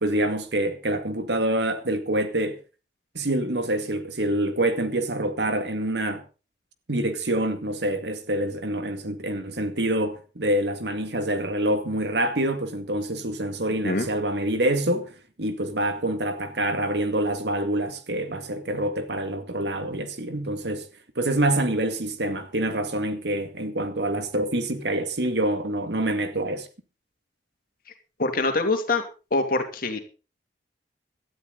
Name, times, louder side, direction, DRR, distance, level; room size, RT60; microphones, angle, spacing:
voice 1, 0.0-2.6 3.1-6.2 6.9-20.9 21.2-26.7, right 1 dB, 70° right, 2.1 m, -26 dB
voice 2, 28.2-29.0 29.3-30.0, left 2 dB, 55° left, 2.7 m, -24 dB
17.5 x 12.5 x 4.0 m
head